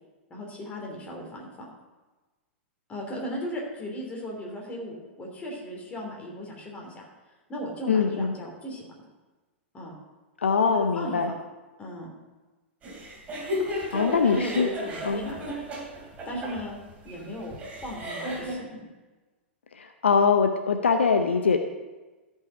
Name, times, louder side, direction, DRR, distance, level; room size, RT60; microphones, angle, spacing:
voice 1, 0.3-1.7 2.9-7.1 7.5-8.9 9.7-9.9 10.6-11.3 11.8-12.1 13.9-15.6 16.2-16.8 17.0-18.8, equal, 20° left, -1 dB, 3.0 m, -36 dB
voice 2, 7.9-8.3 10.4-11.3 13.9-14.7 15.0-15.2 19.7-21.6, left 5 dB, 70° left, 6 dB, 0.7 m, -23 dB
sound 1, 12.8-18.5, left 1 dB, 20° right, 3.0 m, -34 dB
13.5 x 5.6 x 4.9 m, 1.2 s
figure-of-eight pair, 100°, 6 cm